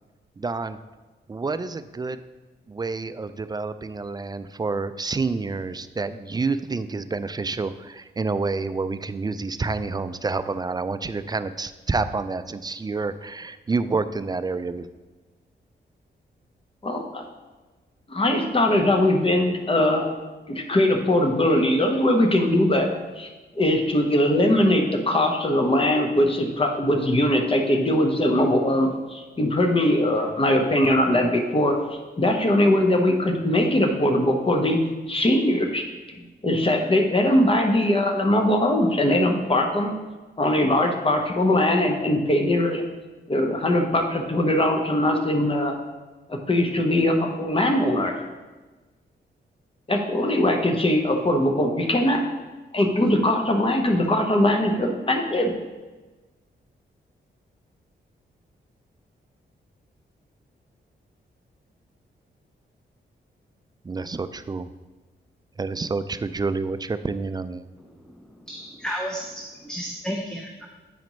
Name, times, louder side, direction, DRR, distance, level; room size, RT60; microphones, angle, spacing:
voice 1, 0.4-0.8 1.3-2.2 2.7-14.9 63.8-64.7 65.6-67.7, right 4 dB, 20° right, 12 dB, 0.3 m, -28 dB
voice 2, 16.8-17.2 18.1-20.1 20.5-22.9 23.2-23.3 23.6-31.8 32.2-34.8 35.1-35.8 36.4-39.9 40.4-42.8 43.3-45.8 46.3-48.2 49.9-52.2 52.7-55.5, left 1 dB, 30° left, 3 dB, 1.0 m, -21 dB
voice 3, 68.0-70.7, equal, 5° left, 0 dB, 0.7 m, -33 dB
8.5 x 5.1 x 3.1 m, 1.2 s
cardioid pair, 80°, 19 cm